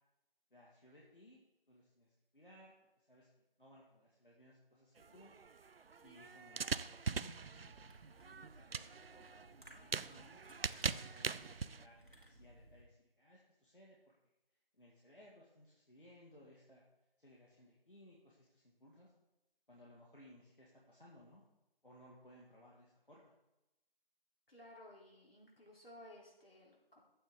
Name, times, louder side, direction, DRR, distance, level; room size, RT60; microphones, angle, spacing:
voice 1, 0.5-1.4 1.7-3.3 3.6-5.3 6.0-7.7 8.4-9.3 9.6-14.0 14.7-16.8 17.2-19.1 19.7-21.4 21.8-23.3, left 1 dB, 60° left, -4 dB, 2.0 m, -62 dB
sound 1, 5.0-11.9, right 5 dB, 75° right, 0.5 m, -42 dB
sound 2, 7.1-12.8, right 1 dB, 55° right, 2.3 m, -61 dB
voice 2, 24.5-27.0, left 1 dB, 75° left, -3 dB, 3.6 m, -57 dB
11.0 x 8.9 x 3.7 m, 0.95 s
figure-of-eight pair, 180°, 29 cm